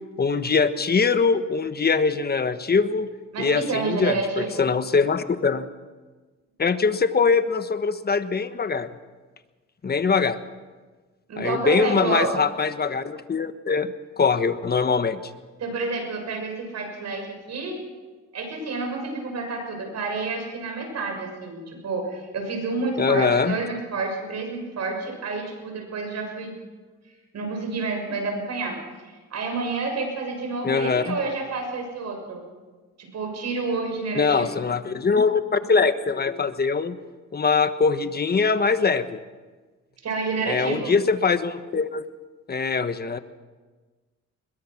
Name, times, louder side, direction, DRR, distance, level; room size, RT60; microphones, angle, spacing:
voice 1, 0.2-3.1 3.4-5.7 6.6-8.9 9.8-10.4 11.4-15.2 23.0-23.6 30.6-31.2 34.1-37.0 37.3-39.2 40.5-42.0 42.5-43.2, left 5 dB, 30° left, 11 dB, 1.3 m, -22 dB
voice 2, 3.3-4.6 11.3-12.3 15.6-17.8 18.3-26.5 27.3-28.8 29.0-32.4 33.0-34.6 40.0-40.9, right 3 dB, 60° right, 3 dB, 6.6 m, -29 dB
22.0 x 21.5 x 6.1 m, 1.3 s
cardioid pair, 90°, 30 cm